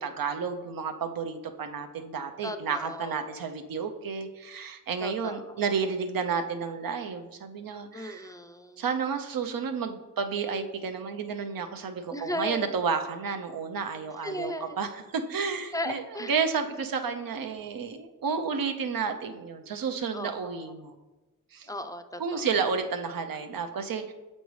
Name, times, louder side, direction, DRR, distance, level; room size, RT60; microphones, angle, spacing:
voice 1, 0.0-8.3 8.8-20.9 21.5-21.7 22.2-24.1, right 5 dB, 90° right, 6 dB, 0.6 m, -31 dB
voice 2, 2.4-3.3 5.0-5.4 7.9-8.8 12.1-12.7 14.2-14.8 15.7-16.3 20.1-20.6 21.7-22.5, left 1 dB, 10° left, 8 dB, 0.4 m, -36 dB
6.9 x 5.3 x 3.1 m, 1.1 s
wide cardioid pair, 85°, 34 cm